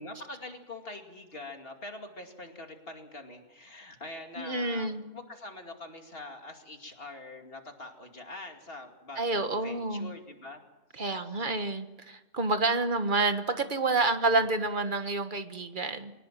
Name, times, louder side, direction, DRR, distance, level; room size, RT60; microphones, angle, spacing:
voice 1, 0.0-10.6 10.9-11.5, left 2 dB, 50° left, 4 dB, 2.7 m, -44 dB
voice 2, 4.4-5.0 9.2-10.1 11.0-16.1, right 3 dB, 40° right, 8 dB, 1.6 m, -28 dB
23.0 x 19.0 x 7.6 m, 1.1 s
omnidirectional pair, 1.3 m